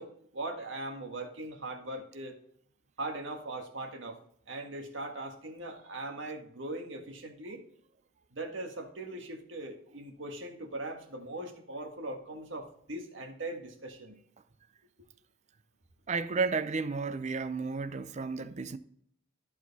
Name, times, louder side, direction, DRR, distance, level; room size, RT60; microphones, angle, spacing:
voice 1, 0.0-2.4 3.0-4.2 4.5-7.6 8.3-14.2, right 2 dB, 75° right, 1.7 m, -40 dB
voice 2, 16.1-18.8, right 4 dB, 40° right, 0.5 m, -32 dB
13.5 x 4.7 x 4.1 m
head